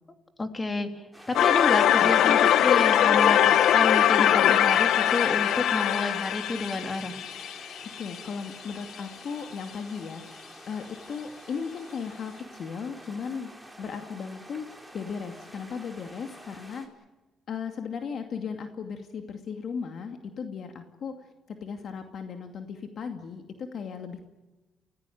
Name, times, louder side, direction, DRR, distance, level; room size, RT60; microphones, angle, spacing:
voice 1, 0.4-0.9 1.3-7.2, left 3 dB, 25° left, 6 dB, 3.3 m, -30 dB
sound 1, 1.1-16.9, right 1 dB, ahead, 4.9 m, -48 dB
sound 2, 1.3-8.2, left 10 dB, 80° left, 1.1 m, -21 dB
voice 2, 7.8-13.5 13.8-14.7 14.9-16.9 17.5-24.2, left 6 dB, 60° left, 5 dB, 2.4 m, -36 dB
29.5 x 17.0 x 9.4 m, 1.1 s
cardioid pair, 90°, 0 cm